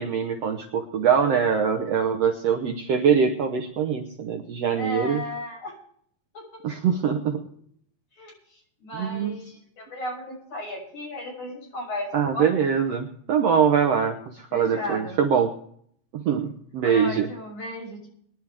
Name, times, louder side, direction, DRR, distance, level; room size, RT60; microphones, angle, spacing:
voice 1, 0.0-5.2 6.6-7.4 8.9-9.4 12.1-15.5 16.1-17.3, right 7 dB, 65° right, 4 dB, 1.7 m, -23 dB
voice 2, 4.7-5.7 6.3-6.6 8.1-12.5 14.5-15.2 16.8-18.1, left 1 dB, 45° left, -1 dB, 7.5 m, -35 dB
23.5 x 11.0 x 3.5 m, 0.64 s
omnidirectional pair, 3.9 m